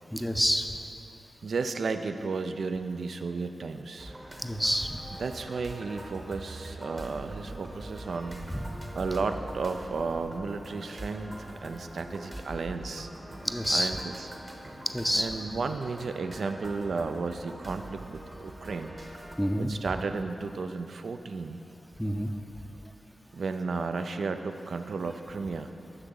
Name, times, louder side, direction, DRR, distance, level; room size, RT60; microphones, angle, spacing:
voice 1, 0.1-0.8 4.4-5.0 8.5-8.7 13.4-13.9 14.9-15.3 19.4-19.7 22.0-22.3, equal, ahead, 6 dB, 0.4 m, -27 dB
voice 2, 1.4-4.1 5.2-8.4 8.9-13.1 13.7-14.3 15.1-19.0 19.6-21.6 23.3-25.8, right 4 dB, 75° right, 8 dB, 0.3 m, -33 dB
sound 1, 4.0-19.4, right 1 dB, 30° right, 0.9 m, -43 dB
6.4 x 6.0 x 3.9 m, 2.8 s
cardioid pair, 45°, 0 cm